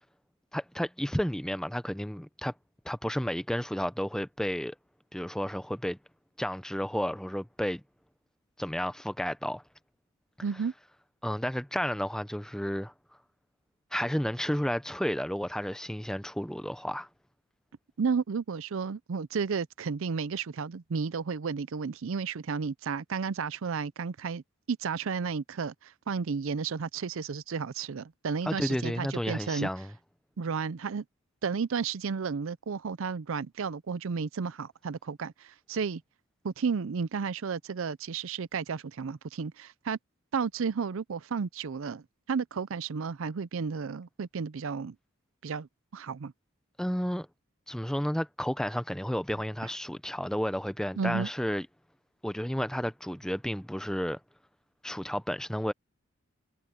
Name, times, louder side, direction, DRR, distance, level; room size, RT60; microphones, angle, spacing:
voice 1, 0.5-2.5 2.8-4.8 5.1-6.0 6.4-7.8 8.6-9.6 11.2-12.9 13.9-17.1 28.5-29.9 46.8-47.3 47.7-51.7 52.2-54.2 54.8-55.7, equal, 5° left, 0.6 m, -32 dB
voice 2, 10.4-10.7 18.0-24.4 24.7-29.7 30.4-31.0 31.4-36.0 36.4-40.0 40.3-45.0 45.4-46.3 51.0-51.3, right 5 dB, 60° right, 0.5 m, -32 dB
head